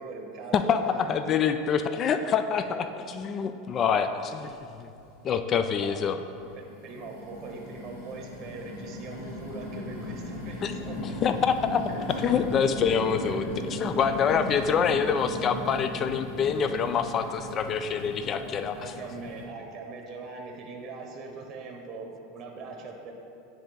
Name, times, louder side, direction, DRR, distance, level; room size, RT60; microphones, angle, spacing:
voice 1, 0.0-1.1 2.5-2.8 3.9-4.1 5.6-6.1 6.6-11.0 14.3-14.6 18.7-23.1, right 4 dB, 40° right, 2 dB, 0.8 m, -41 dB
voice 2, 0.5-2.8 3.1-4.9 5.2-6.2 10.6-10.7 11.2-18.9, left 7 dB, 35° left, 9 dB, 0.3 m, -26 dB
sound 1, 4.4-4.5 5.0-5.6 6.3-19.4, left 1 dB, 80° left, 1.2 m, -37 dB
9.7 x 3.3 x 3.9 m, 2.6 s
hypercardioid pair, 105°, 0 cm